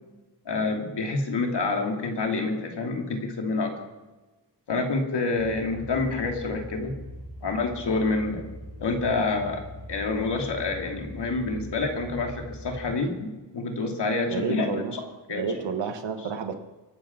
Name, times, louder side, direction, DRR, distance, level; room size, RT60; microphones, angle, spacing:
voice 1, 0.5-3.8 4.7-6.9 7.4-8.4 8.8-9.6 9.9-15.4, left 3 dB, 70° left, 2 dB, 2.8 m, -28 dB
sound 1, 5.4-13.0, left 1 dB, 35° left, 3.0 m, -42 dB
voice 2, 14.3-15.0 15.3-16.6, right 5 dB, 85° right, 7 dB, 1.4 m, -30 dB
24.5 x 8.9 x 6.0 m, 1.2 s
wide cardioid pair, 145°, 43 cm